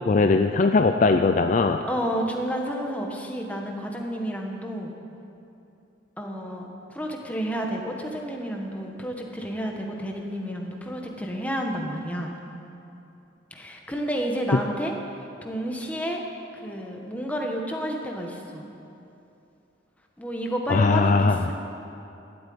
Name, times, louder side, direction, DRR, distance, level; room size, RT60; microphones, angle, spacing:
voice 1, 0.1-1.8 20.7-21.4, left 3 dB, 40° left, 7 dB, 0.4 m, -20 dB
voice 2, 1.9-4.9 6.2-12.3 13.5-15.0 15.4-16.2 16.5-18.7 20.2-21.5, equal, 10° left, 1 dB, 1.4 m, -30 dB
12.5 x 8.6 x 9.5 m, 2.8 s
head